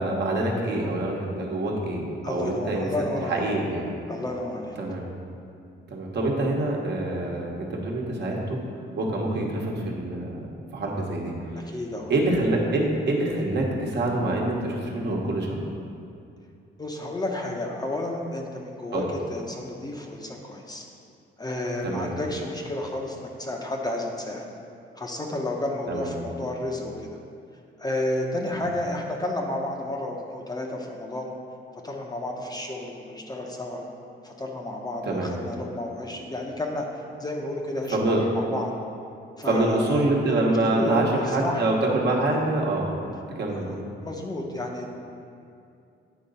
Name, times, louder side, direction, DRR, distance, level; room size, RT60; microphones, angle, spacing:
voice 1, 0.0-2.9 3.3-3.8 4.8-5.0 5.9-8.6 9.0-10.5 10.7-11.3 12.1-15.6 18.9-19.0 21.8-22.1 25.9-26.1 35.1-35.3 37.9-38.2 39.5-42.9 43.4-43.9, right 2 dB, 55° right, -1 dB, 1.3 m, -25 dB
voice 2, 2.2-3.5 4.1-4.8 11.6-12.1 16.8-20.9 21.4-24.5 25.0-27.2 27.8-31.3 31.8-33.8 34.2-38.7 39.4-40.4 40.7-41.7 43.5-43.8 44.0-45.0, left 1 dB, 20° left, 0 dB, 0.7 m, -31 dB
9.1 x 3.9 x 5.5 m, 2.5 s
cardioid pair, 125°, 21 cm